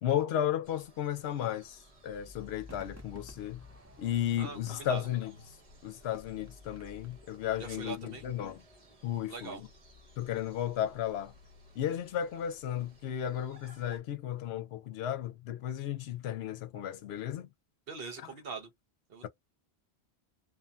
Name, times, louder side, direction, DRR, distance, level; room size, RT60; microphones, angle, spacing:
voice 1, 0.0-3.6 4.0-5.3 5.8-8.6 9.0-9.7 10.2-11.3 11.8-17.5 18.2-18.3, left 10 dB, 75° left, 0.8 m, -34 dB
sound 1, 0.6-14.0, left 2 dB, 35° right, 1.0 m, -55 dB
Crowd / Fireworks, 2.7-8.1 8.3-8.4, right 2 dB, 20° right, 0.5 m, -57 dB
voice 2, 4.4-5.0 7.6-8.2 9.3-9.6 17.9-18.7 19.1-19.3, right 5 dB, 65° right, 0.9 m, -42 dB
2.6 x 2.4 x 2.2 m
omnidirectional pair, 1.1 m